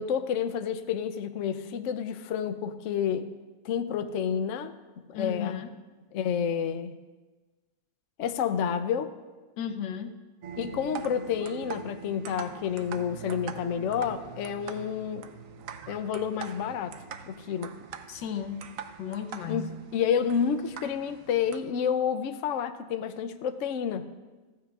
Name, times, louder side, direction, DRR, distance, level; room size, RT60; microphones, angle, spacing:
voice 1, 0.0-3.3 3.6-4.7 5.1-5.6 6.1-6.9 8.2-9.1 10.6-15.3 15.9-16.9 17.3-17.7 19.5-24.1, left 7 dB, 65° left, 9 dB, 0.7 m, -29 dB
voice 2, 5.1-5.7 9.6-10.1 18.1-18.6 19.0-19.8, left 8 dB, 85° left, 8 dB, 1.5 m, -34 dB
sound 1, 10.4-21.6, right 7 dB, 65° right, 0.8 m, -43 dB
15.0 x 14.5 x 2.4 m, 1.2 s
omnidirectional pair, 1.9 m